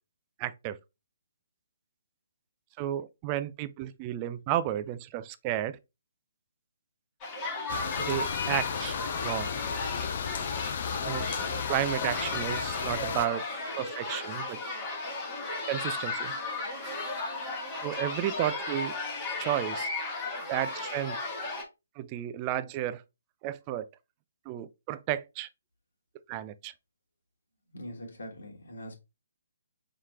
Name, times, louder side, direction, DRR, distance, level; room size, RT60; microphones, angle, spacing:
voice 1, 0.4-0.8 2.8-5.8 8.0-9.5 11.0-11.3 11.7-13.4 13.8-14.6 15.7-16.3 17.8-19.0 19.4-19.9 20.5-21.2 22.0-23.0 23.4-23.9 24.5-25.5 26.3-26.7, right 12 dB, 25° right, 0.4 m, -32 dB
sound 1, 7.2-21.6, left 3 dB, 25° left, 1.3 m, -35 dB
sound 2, 7.7-13.3, left 7 dB, 45° left, 0.5 m, -34 dB
voice 2, 27.7-28.9, equal, 65° left, 1.4 m, -42 dB
5.6 x 3.1 x 2.4 m
figure-of-eight pair, 135°, 0 cm